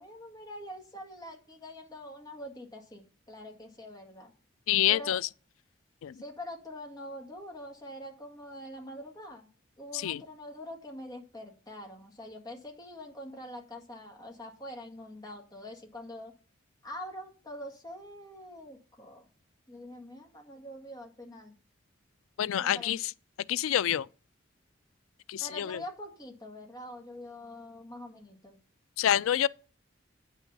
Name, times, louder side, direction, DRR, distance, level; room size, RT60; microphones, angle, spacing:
voice 1, 0.0-4.3 4.9-5.2 6.2-9.5 9.8-16.3 16.8-19.2 19.7-21.5 22.6-22.9 25.4-28.6, left 1 dB, 20° left, 1.9 m, -44 dB
voice 2, 4.7-5.2 6.0-6.2 9.9-10.2 22.4-23.1 23.5-24.1 25.3-25.8 29.0-29.5, left 11 dB, 85° left, 0.3 m, -27 dB
9.0 x 5.7 x 5.5 m
head